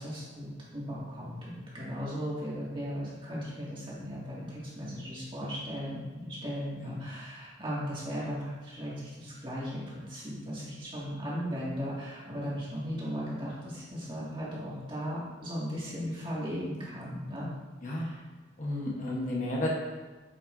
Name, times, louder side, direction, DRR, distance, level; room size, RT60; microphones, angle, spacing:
voice 1, 0.0-9.8 10.1-17.5 18.1-18.2, equal, 25° right, -7 dB, 2.0 m, -37 dB
voice 2, 17.8-18.1 18.6-19.7, left 1 dB, 40° left, -3 dB, 1.0 m, -32 dB
8.5 x 5.9 x 2.6 m, 1.2 s
head